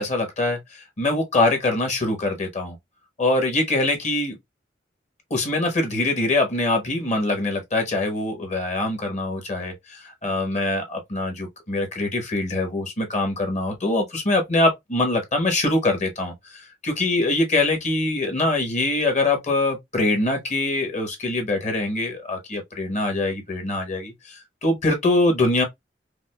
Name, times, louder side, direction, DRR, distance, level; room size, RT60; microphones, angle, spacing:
voice 1, 0.0-2.8 3.2-4.4 5.3-25.6, left 2 dB, 40° left, 1.1 m, -23 dB
4.8 x 2.0 x 2.2 m
head